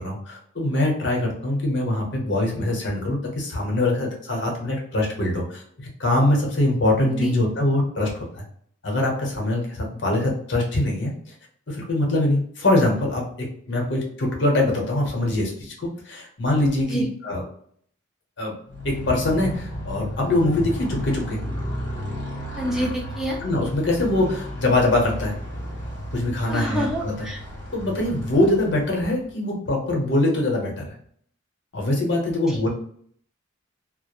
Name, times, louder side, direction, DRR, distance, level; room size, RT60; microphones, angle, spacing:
voice 1, 0.0-8.4 8.8-11.1 11.7-17.4 18.4-18.5 18.8-21.4 23.4-25.3 26.1-27.3 27.7-30.9 31.7-32.7, left 1 dB, 60° left, -1 dB, 0.8 m, -23 dB
Motorcycle, 18.6-29.3, equal, 80° right, 1.0 m, -33 dB
voice 2, 22.5-23.4 26.5-27.4 32.5-32.6, equal, 5° right, -2 dB, 0.5 m, -27 dB
2.3 x 2.0 x 2.9 m, 0.62 s
head